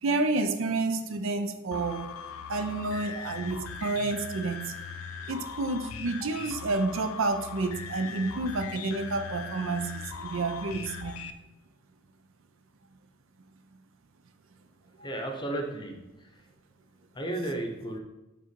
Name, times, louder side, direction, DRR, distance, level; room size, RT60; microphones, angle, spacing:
voice 1, 0.0-2.1 2.5-4.7 5.3-11.1, right 3 dB, 60° right, 7 dB, 0.5 m, -30 dB
sound 1, 1.7-11.3, left 6 dB, 75° left, 0.4 m, -40 dB
voice 2, 15.0-16.4 17.1-18.0, right 1 dB, 20° left, 3 dB, 0.7 m, -34 dB
5.5 x 3.7 x 5.2 m, 1.0 s
head